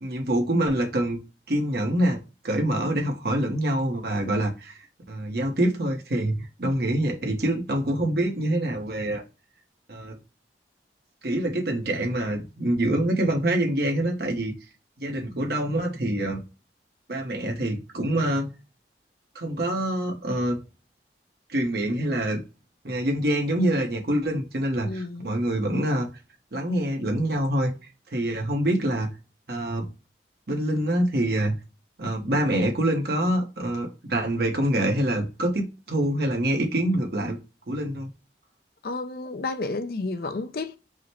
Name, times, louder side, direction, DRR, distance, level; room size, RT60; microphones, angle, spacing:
voice 1, 0.0-1.2 1.5-2.2 2.4-4.8 5.1-9.2 9.9-10.2 11.2-14.5 15.0-16.4 17.1-18.5 19.3-20.6 21.5-22.4 22.8-26.1 26.5-27.7 28.1-29.1 29.5-29.9 30.5-31.6 32.0-37.4 37.7-38.1, right 1 dB, 60° right, 1.0 m, -25 dB
voice 2, 24.8-25.3 38.8-40.8, left 3 dB, 55° left, 0.5 m, -31 dB
4.9 x 2.1 x 4.2 m
head